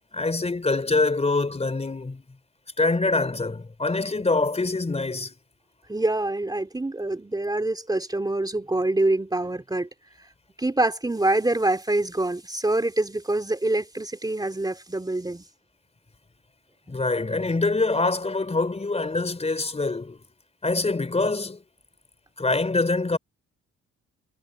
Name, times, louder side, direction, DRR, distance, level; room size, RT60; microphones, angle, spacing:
voice 1, 0.1-2.2 2.8-5.3 16.9-20.2 20.6-21.6 22.4-23.2, left 3 dB, 20° left, 3.8 m, -25 dB
voice 2, 5.9-9.9 10.6-15.4, right 2 dB, 15° right, 3.0 m, -25 dB
cardioid pair, 90°, 30 cm